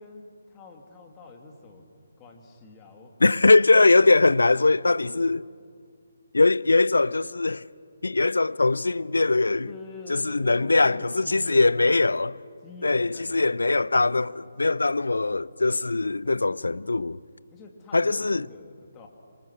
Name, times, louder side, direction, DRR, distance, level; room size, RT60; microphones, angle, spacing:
voice 1, 0.0-1.8 2.2-3.7 5.0-5.1 9.7-11.7 12.6-13.6 17.5-19.1, left 3 dB, 15° left, 2.7 m, -45 dB
voice 2, 3.2-5.5 6.3-7.6 8.0-9.7 10.1-12.4 12.8-17.2 17.9-18.5, left 3 dB, 70° left, 0.6 m, -21 dB
27.5 x 26.0 x 6.3 m
figure-of-eight pair, 140°, 0 cm